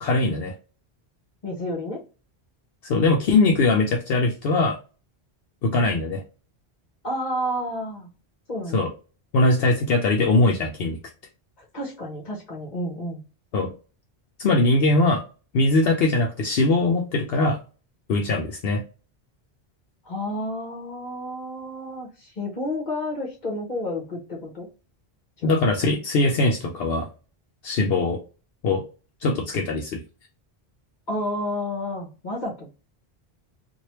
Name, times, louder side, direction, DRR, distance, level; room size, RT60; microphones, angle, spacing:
voice 1, 0.0-0.5 2.8-4.8 5.6-6.2 8.7-8.9 9.3-11.0 13.5-13.7 14.4-15.2 15.5-17.6 18.1-18.8 25.4-27.1 27.6-28.2 28.6-28.8 29.2-30.0, left 2 dB, 75° left, 0 dB, 0.9 m, -21 dB
voice 2, 1.4-2.0 7.0-8.1 8.5-8.9 11.7-13.2 20.0-24.7 25.4-25.5 31.1-32.7, left 1 dB, 50° left, -2 dB, 1.0 m, -30 dB
3.2 x 2.6 x 2.9 m, 0.34 s
omnidirectional pair, 1.0 m